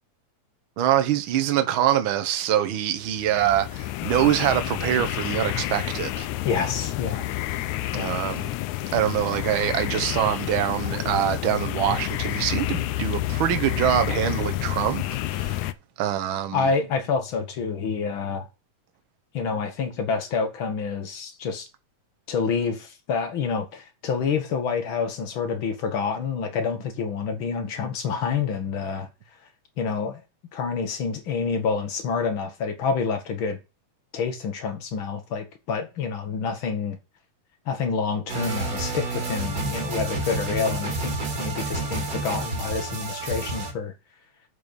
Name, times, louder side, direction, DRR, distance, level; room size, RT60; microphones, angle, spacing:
voice 1, 0.8-6.3 8.0-8.5 8.9-15.0 15.3-15.6 16.0-16.7, right 11 dB, 60° right, 1.4 m, -24 dB
sound 1, 3.1-15.7, left 15 dB, 85° left, 2.0 m, -29 dB
voice 2, 6.4-7.3 7.9-8.1 16.5-18.5 19.3-21.7 22.3-29.1 29.8-30.2 30.5-33.6 34.1-37.0 37.7-43.9, left 5 dB, 50° left, 1.8 m, -28 dB
sound 2, 38.3-43.7, right 3 dB, 35° right, 2.5 m, -30 dB
7.6 x 5.4 x 6.8 m
omnidirectional pair, 3.3 m